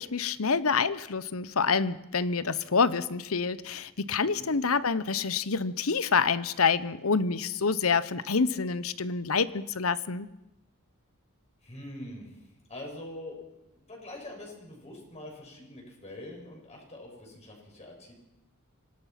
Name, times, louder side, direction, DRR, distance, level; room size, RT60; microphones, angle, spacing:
voice 1, 0.0-10.3, left 5 dB, 75° left, 16 dB, 1.0 m, -27 dB
voice 2, 4.2-4.6 11.6-12.4 12.7-13.4 13.7-18.1, left 1 dB, 30° left, 0 dB, 7.1 m, -44 dB
26.0 x 18.5 x 6.0 m, 0.87 s
head